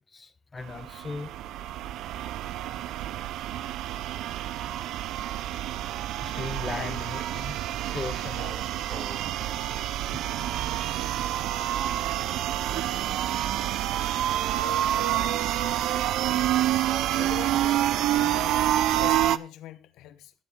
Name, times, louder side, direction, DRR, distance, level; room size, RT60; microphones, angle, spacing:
voice 1, 0.1-1.3 6.2-9.7 10.1-10.2 11.4-11.5 12.5-12.8 17.1-17.2, left 4 dB, 20° left, 0.7 m, -39 dB
sound 1, 0.6-19.4, right 12 dB, 70° right, 0.5 m, -28 dB
voice 2, 6.6-7.0 12.8-13.2 14.5-15.4 16.7-16.8 17.1-20.3, left 12 dB, 90° left, 1.0 m, -44 dB
12.0 x 10.5 x 3.7 m
cardioid pair, 175°, 0 cm